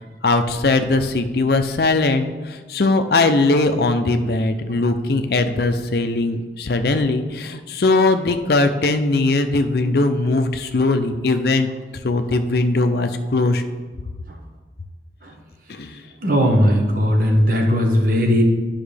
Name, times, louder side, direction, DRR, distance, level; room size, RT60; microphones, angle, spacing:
voice 1, 0.2-11.7 12.0-13.6 15.7-16.0, left 2 dB, 55° left, 8 dB, 0.5 m, -20 dB
voice 2, 16.2-18.4, equal, 50° right, 2 dB, 1.1 m, -17 dB
9.4 x 5.7 x 3.4 m, 1.3 s
head